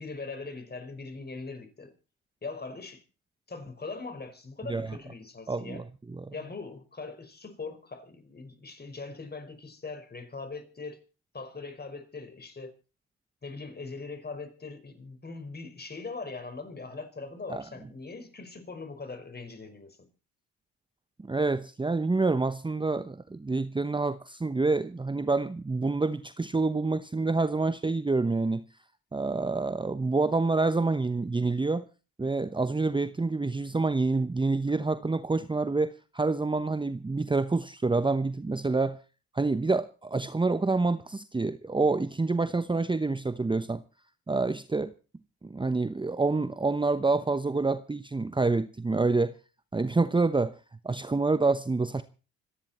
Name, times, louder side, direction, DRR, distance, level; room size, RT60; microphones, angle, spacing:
voice 1, 0.0-1.9 2.4-3.0 3.5-5.8 6.3-11.0 11.3-12.7 13.4-20.0, left 3 dB, 30° left, 5.3 m, -41 dB
voice 2, 5.5-5.8 6.1-6.3 17.5-17.6 21.2-28.6 29.1-31.8 32.2-39.0 39.3-43.8 44.3-44.9 45.4-49.3 49.7-50.6 50.8-52.0, right 3 dB, 15° right, 1.0 m, -27 dB
26.5 x 10.0 x 4.4 m
hypercardioid pair, 60°, 34 cm